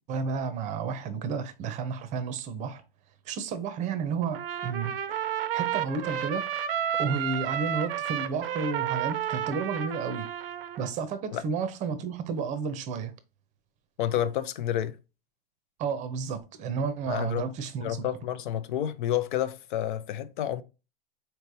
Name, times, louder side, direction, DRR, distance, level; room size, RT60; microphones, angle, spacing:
voice 1, 0.1-2.8 3.3-5.0 5.5-6.5 6.9-10.3 10.8-13.1 15.8-18.1, right 5 dB, 25° right, 0.7 m, -32 dB
Trumpet, 4.3-10.9, right 10 dB, 75° right, 0.6 m, -31 dB
voice 2, 14.0-15.0 17.1-17.5 17.8-20.6, left 11 dB, 60° left, 0.6 m, -29 dB
4.4 x 3.2 x 2.6 m
hypercardioid pair, 125°, 29 cm